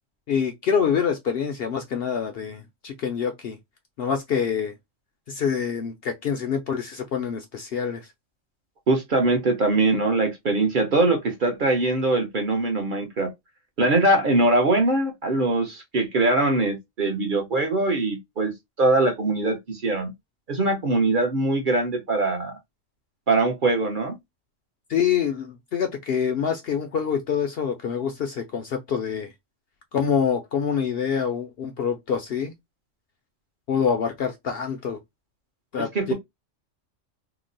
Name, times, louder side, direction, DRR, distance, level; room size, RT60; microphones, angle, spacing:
voice 1, 0.3-3.6 4.0-4.7 5.3-8.1 24.9-29.3 29.9-32.5 33.7-35.0 35.7-36.1, left 7 dB, 60° left, 0.7 m, -26 dB
voice 2, 8.9-13.3 13.8-20.1 20.5-22.5 23.3-24.2 35.9-36.1, right 2 dB, 45° right, 0.8 m, -22 dB
2.9 x 2.0 x 3.8 m
omnidirectional pair, 1.3 m